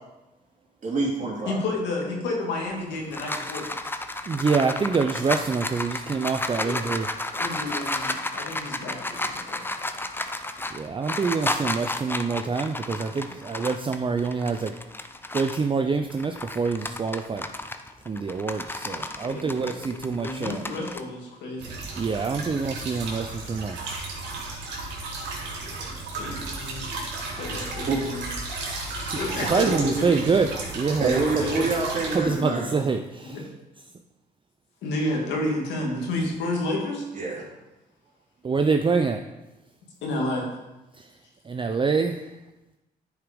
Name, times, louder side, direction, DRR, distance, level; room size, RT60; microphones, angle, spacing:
voice 1, 0.8-1.6 9.5-9.6 27.9-28.5 30.9-32.8 37.1-37.4, right 3 dB, 45° right, -3 dB, 3.0 m, -27 dB
voice 2, 1.5-3.7 6.6-7.0 7.4-9.6 18.9-21.8 25.6-26.9 27.3-28.4 29.2-30.3 31.3-31.6 33.2-33.4 34.8-37.1 40.0-40.5, left 2 dB, 85° left, 0 dB, 2.0 m, -31 dB
sound 1, 2.7-15.7 16.1-21.0, left 2 dB, 10° left, 0.7 m, -32 dB
voice 3, 4.3-7.1 10.7-14.7 15.3-17.5 18.1-20.6 22.0-23.9 29.5-30.5 30.7-31.5 32.1-33.4 38.4-39.2 40.9-41.1 41.5-42.3, right 4 dB, 30° right, 5 dB, 0.5 m, -26 dB
sound 2, 21.6-32.2, right 3 dB, 80° right, 2.2 m, -34 dB
9.6 x 4.9 x 5.1 m, 1.0 s
supercardioid pair, 65°, 18 cm